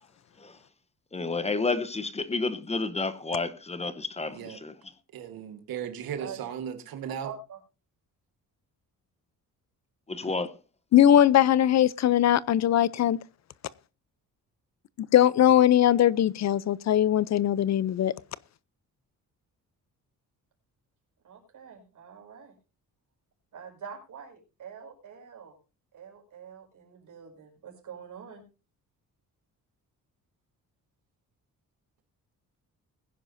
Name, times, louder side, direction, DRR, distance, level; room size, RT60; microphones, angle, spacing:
voice 1, 1.1-4.7 10.1-10.5, left 3 dB, 20° left, 0.9 m, -30 dB
voice 2, 4.3-4.6 5.1-7.3, right 8 dB, 90° right, 1.7 m, -36 dB
voice 3, 6.2-6.5 7.2-7.6 21.2-22.5 23.5-25.6 25.9-28.4, right 7 dB, 60° right, 5.5 m, -45 dB
voice 4, 10.9-13.2 15.0-18.1, left 11 dB, 50° left, 0.6 m, -20 dB
20.5 x 10.5 x 2.6 m
cardioid pair, 150°, 35 cm